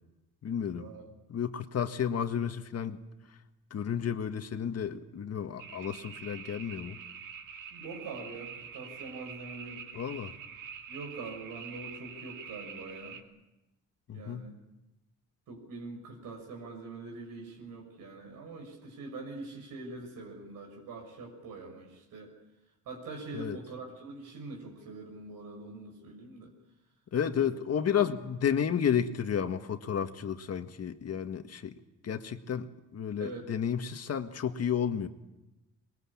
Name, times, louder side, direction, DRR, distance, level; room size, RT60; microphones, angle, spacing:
voice 1, 0.4-0.9 1.3-3.0 3.7-7.0 9.9-10.3 14.1-14.4 23.3-23.6 27.1-31.7 32.0-32.7 32.9-35.1, left 8 dB, 50° left, 8 dB, 1.8 m, -32 dB
sound 1, 5.6-13.2, right 7 dB, 70° right, 2.7 m, -45 dB
voice 2, 7.7-9.9 10.9-13.2 14.1-14.5 15.5-22.3 22.8-26.5 27.3-27.4 28.0-28.1 33.2-33.5, right 3 dB, 85° right, 1 dB, 6.2 m, -44 dB
24.0 x 22.5 x 8.7 m, 0.98 s
cardioid pair, 130°, 33 cm